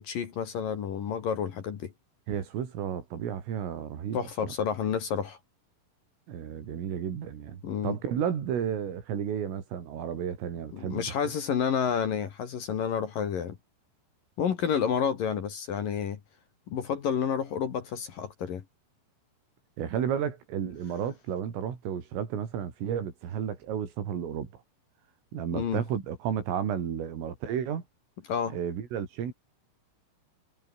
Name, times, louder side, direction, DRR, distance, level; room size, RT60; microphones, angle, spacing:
voice 1, 0.0-1.9 4.1-5.4 7.6-8.0 10.7-13.6 14.4-16.2 16.7-18.6 25.5-25.8 28.3-28.6, left 7 dB, 55° left, 3.1 m, -30 dB
voice 2, 2.3-4.5 6.3-11.1 19.8-24.6 25.3-27.8 28.5-29.3, right 8 dB, 80° right, 6.3 m, -32 dB
omnidirectional pair, 5.8 m